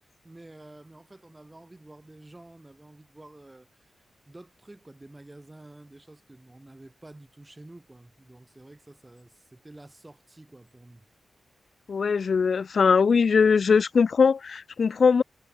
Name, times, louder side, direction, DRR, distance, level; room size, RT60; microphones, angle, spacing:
voice 1, 0.2-11.0, right 2 dB, 15° right, 5.9 m, -50 dB
voice 2, 11.9-15.2, left 5 dB, 55° left, 0.5 m, -21 dB
wide cardioid pair, 105°, 0 cm